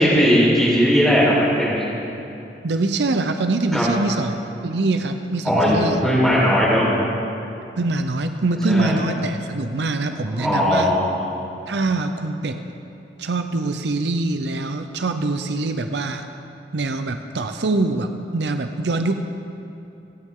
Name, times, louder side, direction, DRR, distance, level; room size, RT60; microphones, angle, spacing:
voice 1, 0.0-1.8 3.7-3.8 5.4-5.8 6.0-6.9 8.7-9.0 10.3-11.1, equal, ahead, -8 dB, 4.3 m, -18 dB
voice 2, 2.6-4.4 4.6-6.0 7.8-10.9 11.7-12.6 13.2-16.2 16.7-19.1, right 2 dB, 75° right, 7 dB, 0.6 m, -23 dB
28.0 x 9.5 x 3.8 m, 2.8 s
head